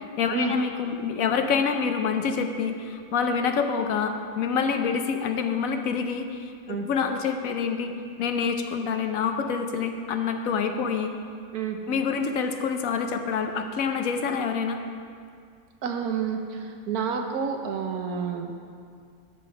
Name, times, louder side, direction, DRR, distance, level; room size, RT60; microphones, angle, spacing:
voice 1, 0.2-7.9 8.2-11.1 11.9-14.8, left 6 dB, 70° left, 6 dB, 1.1 m, -27 dB
voice 2, 15.8-18.5, right 6 dB, 80° right, 4 dB, 1.4 m, -29 dB
12.0 x 5.2 x 5.8 m, 2.2 s
omnidirectional pair, 1.6 m